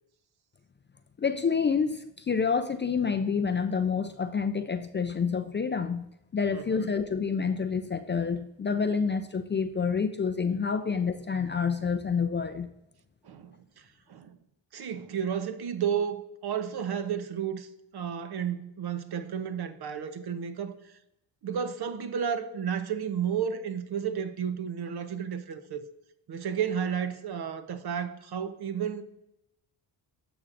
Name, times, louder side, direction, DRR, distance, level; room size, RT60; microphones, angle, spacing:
voice 1, 1.2-12.7, left 5 dB, 25° left, 0.4 m, -28 dB
voice 2, 6.5-6.9 13.2-14.4 14.7-20.9 21.4-25.8 26.3-29.0, right 8 dB, 55° right, 0.9 m, -32 dB
13.0 x 6.1 x 2.6 m
supercardioid pair, 60°, 47 cm